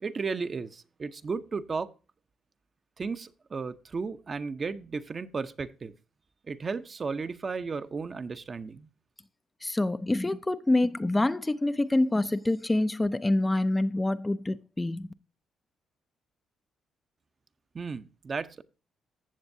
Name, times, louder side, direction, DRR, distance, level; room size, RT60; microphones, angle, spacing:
voice 1, 0.0-1.9 3.0-5.9 6.5-8.9 17.7-18.6, right 4 dB, 35° right, 0.7 m, -34 dB
voice 2, 9.6-15.1, left 2 dB, 15° left, 0.4 m, -26 dB
15.0 x 7.1 x 2.7 m
cardioid pair, 90°, 0 cm